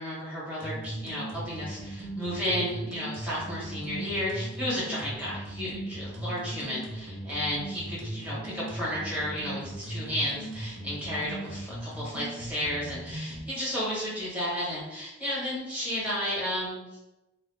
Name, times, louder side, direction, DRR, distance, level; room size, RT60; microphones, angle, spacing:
voice 1, 0.0-17.0, equal, 5° right, -8 dB, 1.1 m, -33 dB
sound 1, 0.6-13.4, right 1 dB, 75° right, 0.7 m, -38 dB
2.4 x 2.0 x 3.3 m, 1.0 s
head